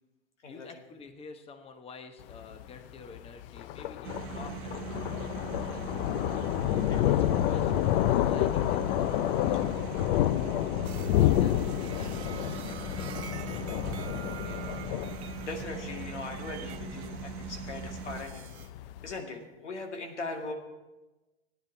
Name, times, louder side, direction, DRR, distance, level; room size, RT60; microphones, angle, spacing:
voice 1, 0.5-5.9 6.6-14.7, left 4 dB, 15° left, 7 dB, 0.9 m, -51 dB
Thunder, 2.2-19.1, left 13 dB, 55° left, 0.5 m, -29 dB
sound 1, 4.0-18.2, right 9 dB, 35° right, 1.0 m, -41 dB
voice 2, 6.9-7.2 15.4-18.4 19.0-20.5, left 3 dB, 85° left, 3 dB, 2.1 m, -39 dB
sound 2, 10.8-18.7, right 10 dB, 65° right, 1.0 m, -48 dB
15.5 x 9.7 x 4.5 m, 1.1 s
hypercardioid pair, 110°, 34 cm